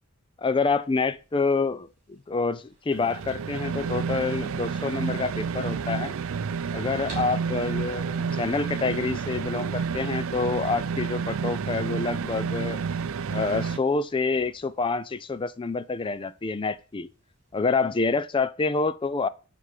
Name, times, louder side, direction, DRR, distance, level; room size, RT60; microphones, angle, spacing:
voice 1, 0.4-6.2 6.7-12.8 13.3-17.1 17.5-19.3, left 4 dB, 25° left, 0.4 m, -27 dB
sound 1, 0.6-17.6, right 2 dB, 35° right, 3.2 m, -55 dB
sound 2, 2.9-13.8, right 6 dB, 65° right, 0.4 m, -30 dB
9.3 x 3.5 x 6.4 m
head